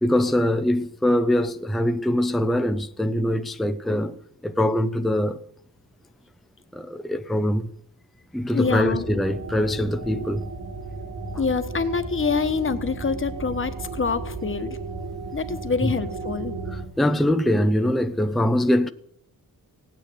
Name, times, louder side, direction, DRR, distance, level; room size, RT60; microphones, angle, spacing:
voice 1, 0.0-4.2 4.4-5.4 6.7-7.7 8.3-10.5 15.8-15.9 16.7-18.9, left 1 dB, ahead, 0.5 m, -23 dB
voice 2, 8.5-9.1 11.4-14.8 15.3-16.5, left 5 dB, 35° left, 1.2 m, -26 dB
sound 1, 8.6-16.8, right 3 dB, 85° right, 6.7 m, -34 dB
17.5 x 9.4 x 8.4 m
wide cardioid pair, 160°, 37 cm